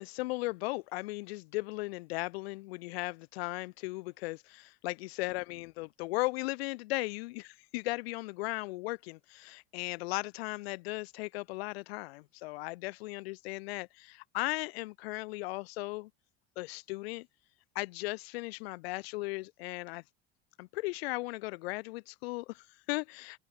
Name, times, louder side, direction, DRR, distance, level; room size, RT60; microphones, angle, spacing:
voice 1, 0.0-16.1 16.6-17.3 17.8-20.0 20.6-23.4, left 22 dB, 75° left, 3.4 m, -37 dB
open air
hypercardioid pair, 85°, 31 cm